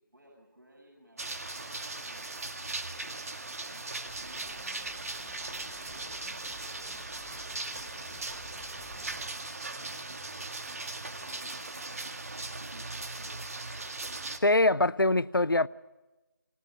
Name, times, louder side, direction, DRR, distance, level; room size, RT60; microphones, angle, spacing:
voice 1, 0.1-3.9 4.2-10.9 11.2-13.4, right 1 dB, 60° right, 8.0 m, -57 dB
sound 1, 1.2-14.4, right 2 dB, 45° right, 1.9 m, -39 dB
sound 2, 4.0-9.3, left 1 dB, 5° left, 3.8 m, -53 dB
voice 2, 14.4-15.7, left 2 dB, 85° left, 0.7 m, -23 dB
30.0 x 20.5 x 5.5 m
figure-of-eight pair, 165°, 11 cm